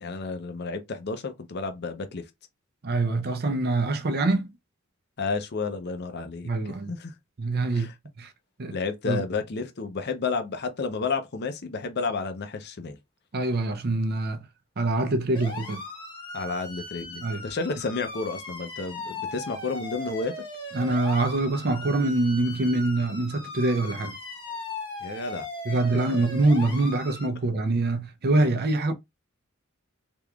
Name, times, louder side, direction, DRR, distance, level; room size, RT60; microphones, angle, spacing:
voice 1, 0.0-2.2 5.2-6.5 6.9-7.1 7.7-7.9 8.7-13.0 16.3-20.3 25.0-25.5 26.1-26.2, left 4 dB, 50° left, 0.6 m, -31 dB
voice 2, 2.8-4.5 6.4-6.9 7.4-7.9 8.2-8.3 8.6-8.8 9.1-9.2 13.3-14.5 14.8-15.8 17.2-17.4 20.7-24.1 25.6-28.9, right 2 dB, 50° right, 0.6 m, -25 dB
sound 1, 15.4-27.3, left 2 dB, 20° left, 1.0 m, -38 dB
3.5 x 3.0 x 2.3 m
head